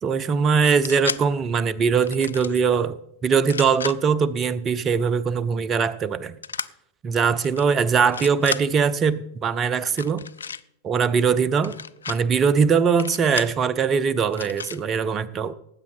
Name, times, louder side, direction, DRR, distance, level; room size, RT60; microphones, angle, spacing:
voice 1, 0.0-6.4 7.0-10.2 10.8-11.8 12.1-15.5, right 6 dB, 25° right, 19 dB, 0.6 m, -21 dB
sound 1, 0.6-1.2 2.0-2.6 3.4-4.0 6.4-6.7 7.4-7.6 8.0-8.6 9.9-10.6 11.6-12.2 13.0-13.6 14.3-14.8, left 6 dB, 70° left, 0.3 m, -33 dB
18.5 x 8.2 x 4.1 m, 0.79 s
figure-of-eight pair, 90°, 0 cm